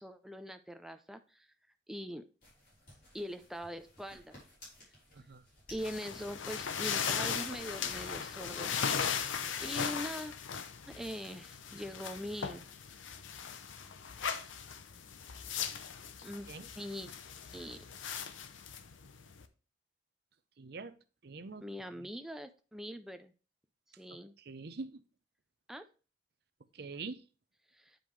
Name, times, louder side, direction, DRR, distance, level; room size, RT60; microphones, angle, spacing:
voice 1, 0.0-1.5 1.9-2.2 3.1-4.4 5.7-8.8 9.2-10.3 10.9-12.7 16.2-16.5 16.8-17.1 17.5-17.8 21.6-23.3 24.0-24.3 25.7-25.8 27.7-28.0, equal, ahead, 8 dB, 0.4 m, -42 dB
sound 1, 2.4-8.3, left 1 dB, 45° left, 4.1 m, -58 dB
sound 2, 5.8-19.4, left 7 dB, 85° left, 0.7 m, -38 dB
voice 2, 20.6-20.9 21.2-21.7 24.4-25.0 26.7-27.2, right 4 dB, 55° right, 11 dB, 0.6 m, -44 dB
9.2 x 5.1 x 3.1 m, 0.36 s
head